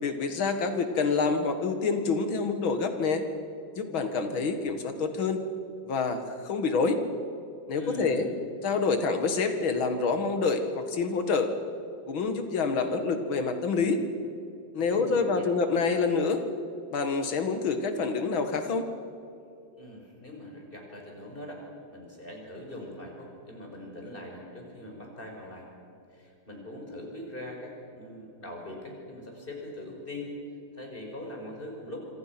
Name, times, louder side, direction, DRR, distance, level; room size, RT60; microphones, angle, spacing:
voice 1, 0.0-3.2 3.8-5.4 5.8-7.0 7.7-8.3 8.6-11.5 12.1-14.0 14.7-16.4 16.9-18.8, left 4 dB, 85° left, 7 dB, 2.6 m, -27 dB
voice 2, 7.7-8.3 14.9-15.5 19.8-21.6 21.9-25.7 26.1-30.3 30.7-32.0, left 1 dB, 25° left, 0 dB, 5.4 m, -41 dB
26.5 x 25.5 x 6.0 m, 2.7 s
omnidirectional pair, 2.1 m